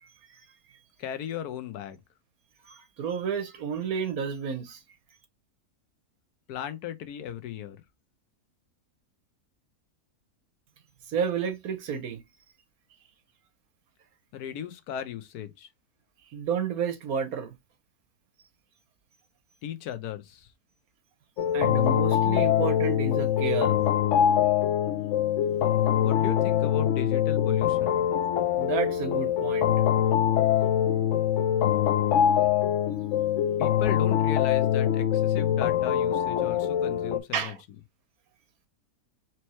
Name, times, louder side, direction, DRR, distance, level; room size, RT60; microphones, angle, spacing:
voice 1, 1.0-2.0 6.5-7.8 14.3-15.7 19.6-20.5 25.9-28.0 33.6-37.6, left 9 dB, 90° left, 1.3 m, -36 dB
voice 2, 2.7-4.8 11.1-12.2 16.3-17.5 21.5-23.8 25.6-25.7 28.6-29.7 37.3-37.6, right 7 dB, 75° right, 1.4 m, -31 dB
sound 1, 21.4-37.2, left 10 dB, 65° left, 0.8 m, -24 dB
4.4 x 3.1 x 3.0 m
omnidirectional pair, 1.6 m